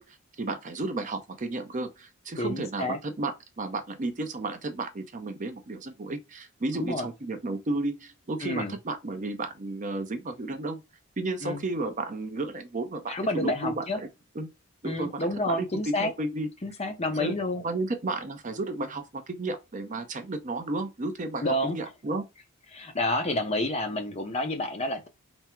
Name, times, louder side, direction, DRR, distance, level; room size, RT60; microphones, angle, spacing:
voice 1, 0.0-10.8 11.2-13.8 14.4-14.5 14.8-16.5 17.0-17.3 17.6-22.3, right 2 dB, 35° right, 0.6 m, -33 dB
voice 2, 2.4-3.0 6.8-7.1 8.4-8.7 11.4-11.6 13.1-14.0 14.8-16.1 16.6-17.6 21.4-21.8 22.7-25.1, left 1 dB, 30° left, 0.6 m, -29 dB
3.5 x 2.0 x 4.3 m
head